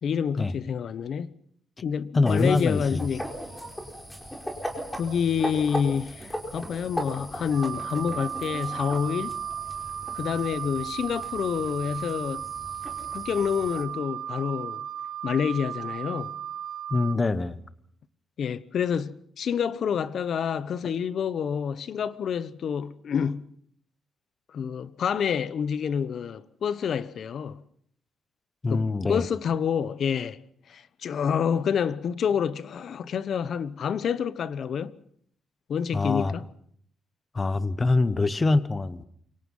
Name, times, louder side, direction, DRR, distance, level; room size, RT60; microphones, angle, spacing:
voice 1, 0.0-1.3 1.8-3.3 5.0-9.4 10.1-12.4 13.1-14.8 15.2-16.4 18.4-23.5 24.5-27.6 28.7-30.4 30.7-34.9 35.7-36.5, left 7 dB, 50° left, 1.1 m, -28 dB
voice 2, 2.1-3.0 16.9-17.6 28.6-29.3 35.9-36.3 37.3-39.0, left 3 dB, 20° left, 1.1 m, -24 dB
sound 1, 2.2-13.8, equal, 5° left, 4.6 m, -38 dB
Wind instrument woodwind instrument, 7.5-17.2, right 9 dB, 70° right, 3.0 m, -35 dB
28.0 x 24.5 x 5.6 m
cardioid pair, 165°, 0 cm